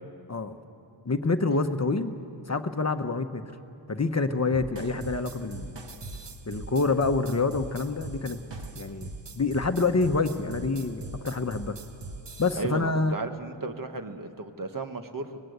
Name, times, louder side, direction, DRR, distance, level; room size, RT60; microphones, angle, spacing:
voice 1, 1.0-2.1 2.5-3.4 3.9-5.7 6.5-8.4 8.7-9.1 9.4-11.8 12.4-13.2, left 3 dB, 35° left, 7 dB, 1.0 m, -27 dB
sound 1, 4.5-12.5, right 2 dB, 65° right, 1.7 m, -41 dB
voice 2, 12.5-15.4, right 3 dB, 45° right, 7 dB, 1.4 m, -34 dB
25.0 x 19.5 x 8.0 m, 2.7 s
wide cardioid pair, 75°, 47 cm